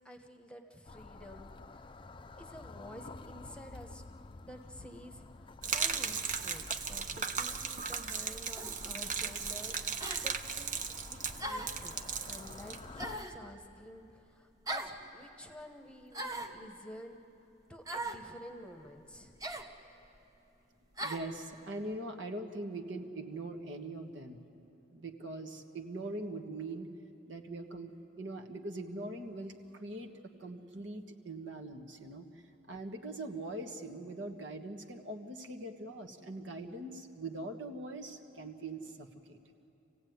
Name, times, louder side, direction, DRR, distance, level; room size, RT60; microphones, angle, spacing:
voice 1, 0.0-1.9 2.4-4.0 4.4-12.0 12.2-17.2 17.7-19.4, equal, 5° left, 5 dB, 1.1 m, -51 dB
sound 1, 0.9-13.2, left 3 dB, 25° left, 0.5 m, -51 dB
Gurgling / Liquid, 5.6-13.3, right 6 dB, 40° right, 0.9 m, -37 dB
sound 2, 8.6-8.8 10.0-10.2 11.4-11.8 13.0-13.4 14.7-15.0 16.1-16.6 17.9-18.2 19.4-19.7 21.0-21.3, right 1 dB, 20° right, 1.2 m, -38 dB
voice 2, 21.0-24.5 24.9-26.9 27.3-30.1 30.4-32.3 32.7-39.4, right 2 dB, 70° right, 5 dB, 1.5 m, -42 dB
27.0 x 16.5 x 9.4 m, 2.9 s
head